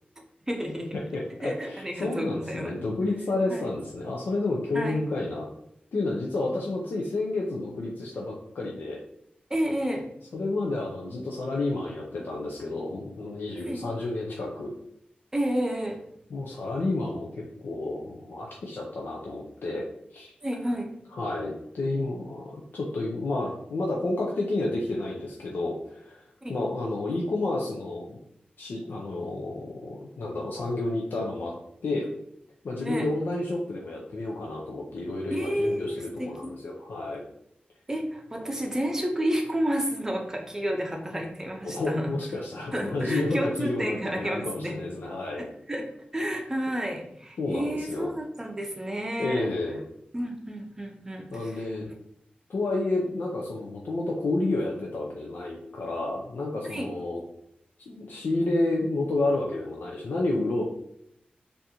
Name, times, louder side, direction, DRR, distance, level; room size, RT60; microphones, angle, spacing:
voice 1, 0.5-0.9 1.4-2.8 3.5-3.6 4.7-5.0 9.5-10.0 13.7-13.8 15.3-16.0 20.4-20.9 26.4-26.5 32.8-33.1 35.3-36.6 37.9-42.1 42.7-44.8 45.7-45.9 46.1-49.5 50.1-51.7 56.7-56.9, equal, 15° right, 1 dB, 0.6 m, -30 dB
voice 2, 1.1-5.5 5.9-9.0 10.3-14.7 16.3-19.8 20.1-20.3 21.1-28.2 28.6-31.5 31.8-32.1 32.6-37.2 41.6-45.4 47.4-48.1 49.2-49.8 51.3-51.9 52.5-57.2 57.9-60.7, left 2 dB, 80° left, -2 dB, 0.5 m, -30 dB
3.4 x 2.6 x 2.9 m, 0.75 s
wide cardioid pair, 130°, 3 cm